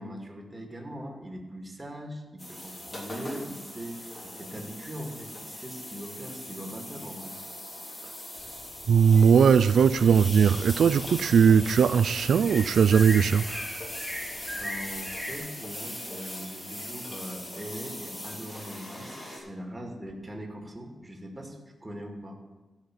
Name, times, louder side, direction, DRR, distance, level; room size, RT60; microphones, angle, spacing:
voice 1, 0.0-7.4 14.5-22.3, equal, 15° right, 2.2 m, -41 dB
sound 1, 2.4-19.4, left 1 dB, 35° left, 3.3 m, -40 dB
sound 2, 8.4-15.4, equal, 15° left, 3.9 m, -41 dB
voice 2, 8.9-13.6, right 7 dB, 85° right, 0.4 m, -19 dB
13.5 x 5.8 x 7.6 m
wide cardioid pair, 115°, 0 cm